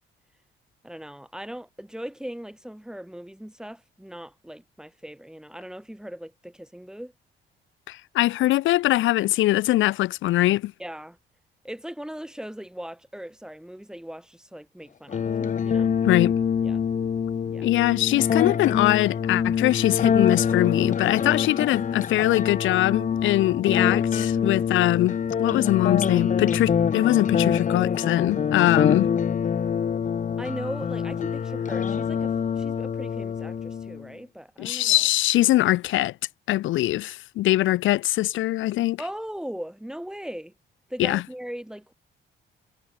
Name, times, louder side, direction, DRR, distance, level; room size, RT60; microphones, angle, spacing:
voice 1, 0.8-7.1 10.8-11.2 11.6-16.0 16.6-16.8 17.5-17.7 24.4-24.6 30.4-35.0 37.4-37.6 39.0-40.5 40.9-41.9, equal, 5° right, 4.7 m, -38 dB
voice 2, 7.9-10.7 16.0-16.4 17.6-29.1 34.6-36.1 36.5-39.0 41.0-41.2, left 16 dB, 80° left, 0.5 m, -22 dB
sound 1, 15.1-34.1, left 7 dB, 40° left, 0.9 m, -25 dB
cardioid pair, 90°, 20 cm